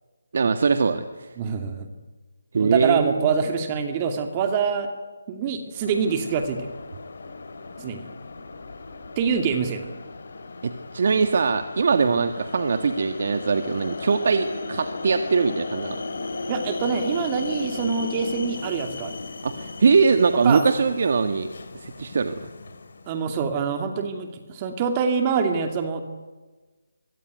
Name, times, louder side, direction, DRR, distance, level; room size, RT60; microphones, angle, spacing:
voice 1, 0.3-1.3 2.5-3.3 10.6-16.0 19.4-21.5 21.7-22.4, right 5 dB, 55° right, 7 dB, 1.7 m, -22 dB
voice 2, 1.4-1.9 2.5-4.9 5.3-6.6 7.8-8.1 9.2-9.9 16.5-19.2 20.4-20.6 23.1-26.0, right 6 dB, 25° right, 5 dB, 2.6 m, -25 dB
sound 1, 5.7-23.2, left 3 dB, 60° left, 3.6 m, -36 dB
24.0 x 23.0 x 9.4 m, 1.3 s
figure-of-eight pair, 155°, 0 cm